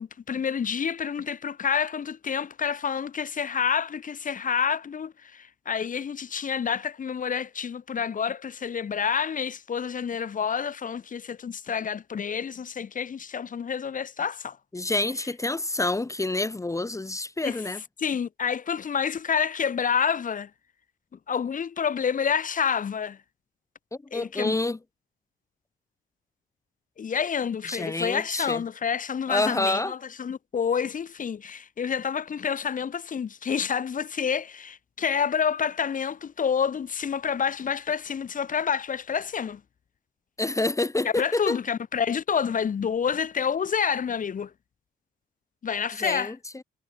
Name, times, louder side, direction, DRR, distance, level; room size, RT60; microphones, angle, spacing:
voice 1, 0.0-14.6 17.4-20.5 21.3-23.2 24.1-24.5 27.0-39.6 41.0-44.5 45.6-46.3, left 7 dB, 40° left, 1.2 m, -28 dB
voice 2, 14.7-17.8 23.9-24.8 27.7-28.6 29.3-29.9 40.4-41.6 46.0-46.6, left 2 dB, 15° left, 0.8 m, -28 dB
cardioid pair, 90°, 20 cm